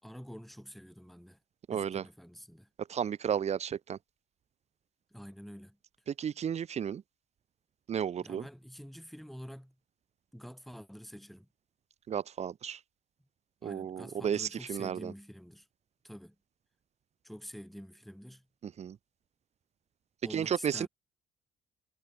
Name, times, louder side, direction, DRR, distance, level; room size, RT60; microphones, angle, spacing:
voice 1, 0.0-1.4 1.7-2.7 5.1-5.8 8.2-9.8 10.3-11.5 13.6-15.7 16.0-16.4 17.2-18.5 20.2-20.9, equal, ahead, 6.3 m, -47 dB
voice 2, 1.7-2.0 2.8-4.0 6.1-7.0 7.9-8.5 12.1-12.8 13.6-15.1 18.6-19.0 20.3-20.9, right 8 dB, 40° right, 0.9 m, -33 dB
cardioid pair, 110°, 17 cm